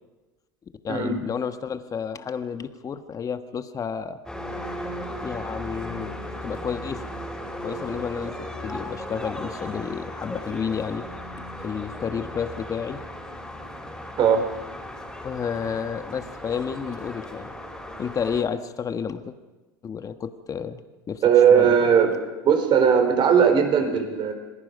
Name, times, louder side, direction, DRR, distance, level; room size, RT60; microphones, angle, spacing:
voice 1, 0.8-4.2 5.2-7.1 7.6-11.0 11.6-13.0 15.2-17.5 18.0-19.3 19.8-21.2 21.5-21.8, left 7 dB, 30° left, 9 dB, 1.4 m, -31 dB
sound 1, 4.3-18.4, equal, 5° left, 6.1 m, -36 dB
voice 2, 21.2-22.1 22.4-24.3, right 7 dB, 45° right, 6 dB, 4.4 m, -18 dB
27.0 x 20.0 x 5.3 m, 1.2 s
hypercardioid pair, 80°, 11 cm